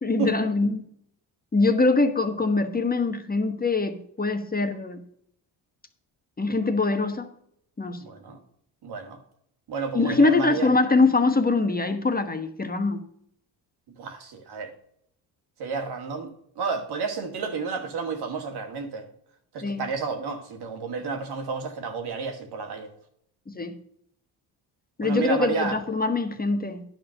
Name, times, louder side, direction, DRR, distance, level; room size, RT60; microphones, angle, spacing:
voice 1, 0.0-0.8 1.5-5.0 6.4-7.3 7.8-8.0 9.9-13.0 19.6-19.9 23.5-23.7 25.0-26.8, left 3 dB, 20° left, 1.2 m, -23 dB
voice 2, 8.0-8.4 8.8-9.2 9.7-10.7 14.0-14.7 15.6-16.3 16.6-19.1 19.5-22.9 25.0-25.8, right 5 dB, 65° right, 2.1 m, -31 dB
10.5 x 4.9 x 6.4 m
supercardioid pair, 80°, 43 cm